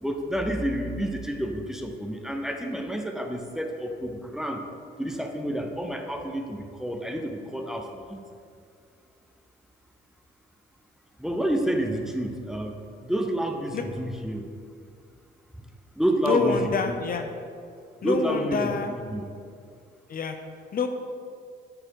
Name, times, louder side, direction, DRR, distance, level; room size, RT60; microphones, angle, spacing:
voice 1, 0.0-4.6 5.0-8.2 11.2-12.8 13.0-14.5 16.0-16.9 18.0-19.3, right 1 dB, ahead, 4 dB, 0.6 m, -29 dB
voice 2, 16.2-17.3 18.0-18.9 20.1-20.4 20.7-20.9, left 5 dB, 45° left, 6 dB, 0.6 m, -26 dB
7.7 x 4.2 x 4.7 m, 2.3 s
cardioid pair, 90°, 20 cm